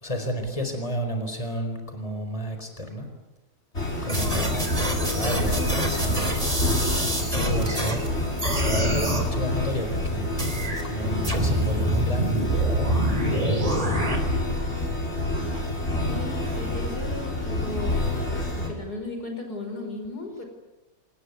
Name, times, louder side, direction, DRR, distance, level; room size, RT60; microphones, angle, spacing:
voice 1, 0.0-3.1 4.0-6.6 7.0-8.1 8.5-13.9, equal, 20° left, 6 dB, 4.5 m, -32 dB
sound 1, 3.7-18.7, left 1 dB, 45° left, 6.2 m, -27 dB
sound 2, 4.1-8.1 8.4-9.3 10.4-10.8 11.2-14.2, right 1 dB, 20° right, 3.8 m, -27 dB
voice 2, 16.1-18.0 18.5-20.5, left 2 dB, 85° left, 4 dB, 5.8 m, -36 dB
26.0 x 20.0 x 9.7 m, 1.0 s
omnidirectional pair, 1.6 m